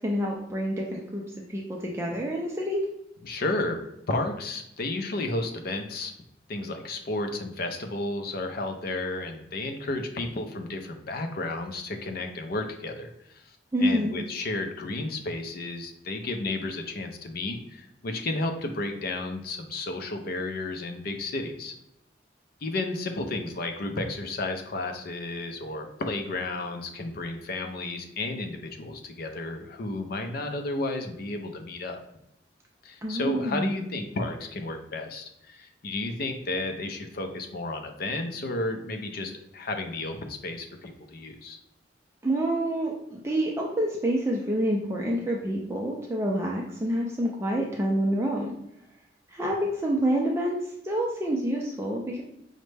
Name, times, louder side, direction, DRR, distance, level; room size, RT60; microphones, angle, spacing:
voice 1, 0.0-1.2 1.5-2.8 13.7-14.2 33.0-33.8 42.2-48.5 49.3-50.6 50.8-52.2, right 1 dB, 15° right, -2 dB, 0.4 m, -27 dB
voice 2, 3.2-6.1 6.5-21.7 22.6-32.0 32.8-41.6, left 2 dB, 55° left, 5 dB, 0.5 m, -32 dB
5.1 x 2.1 x 3.2 m, 0.81 s
head